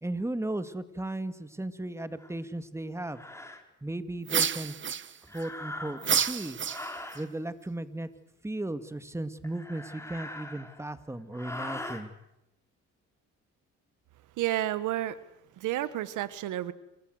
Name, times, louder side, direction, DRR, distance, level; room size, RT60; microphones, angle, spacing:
voice 1, 0.0-3.2 3.8-4.8 5.3-6.6 7.1-8.1 8.4-12.1, right 1 dB, 10° right, 11 dB, 2.1 m, -36 dB
sound 1, 2.2-2.3 3.1-3.6 5.2-6.2 6.6-7.3 9.4-10.9 11.3-12.0, left 1 dB, 10° left, 4.5 m, -41 dB
sound 2, 4.3-5.4 6.0-7.2, right 7 dB, 40° right, 1.0 m, -29 dB
voice 2, 14.4-15.2 15.6-16.7, right 14 dB, 85° right, 15 dB, 1.5 m, -30 dB
28.0 x 25.0 x 8.0 m, 0.86 s
cardioid pair, 90°, 30 cm